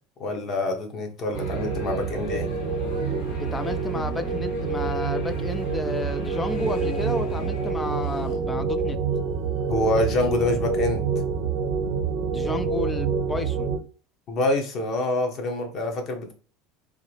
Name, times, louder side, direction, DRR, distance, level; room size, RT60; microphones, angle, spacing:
voice 1, 0.2-2.5 9.7-11.0 14.3-16.3, left 1 dB, 40° left, 1.2 m, -26 dB
sound 1, 1.0-5.7 6.4-9.0 9.6-9.8, left 4 dB, 60° left, 0.7 m, -43 dB
sound 2, 1.3-7.7, left 3 dB, 80° left, 1.5 m, -41 dB
sound 3, 1.3-13.8, right 5 dB, 60° right, 0.9 m, -27 dB
voice 2, 3.4-9.0 12.3-13.7, left 2 dB, 15° left, 0.5 m, -32 dB
3.8 x 2.8 x 3.3 m
supercardioid pair, 120°, 0 cm